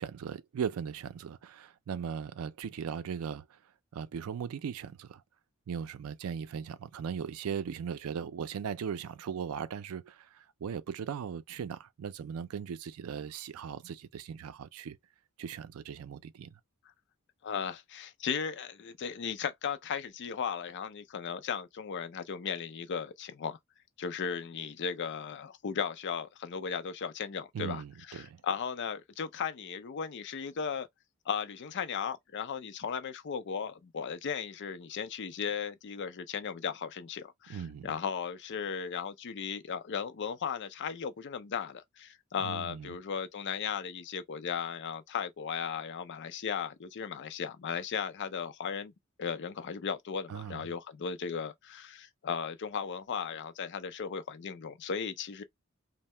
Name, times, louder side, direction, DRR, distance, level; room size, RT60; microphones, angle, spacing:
voice 1, 0.0-3.6 3.9-5.2 5.7-15.0 15.4-16.6 27.5-28.4 37.5-37.9 42.4-43.0 50.3-50.6, right 7 dB, 85° right, 0.4 m, -38 dB
voice 2, 17.4-23.6 24.0-30.9 31.3-48.9 49.2-55.4, left 6 dB, 55° left, 0.5 m, -36 dB
2.7 x 2.0 x 3.2 m
head